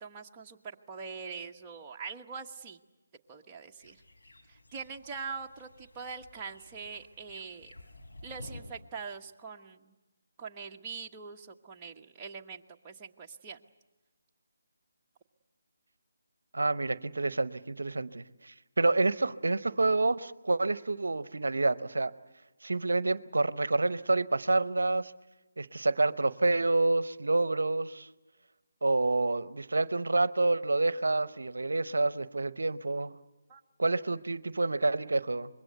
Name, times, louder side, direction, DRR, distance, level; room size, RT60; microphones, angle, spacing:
voice 1, 0.0-2.8 3.3-4.0 4.5-7.7 8.2-9.9 10.4-13.6 33.5-33.6, right 5 dB, 20° right, 1 dB, 1.2 m, -43 dB
sound 1, 3.8-8.8, left 2 dB, 80° left, 4.3 m, -52 dB
voice 2, 16.5-22.1 22.6-25.1 25.6-28.1 28.8-33.1 33.8-35.5, right 2 dB, 75° right, 16 dB, 0.7 m, -28 dB
25.5 x 22.0 x 8.1 m, 1.1 s
figure-of-eight pair, 155°, 0 cm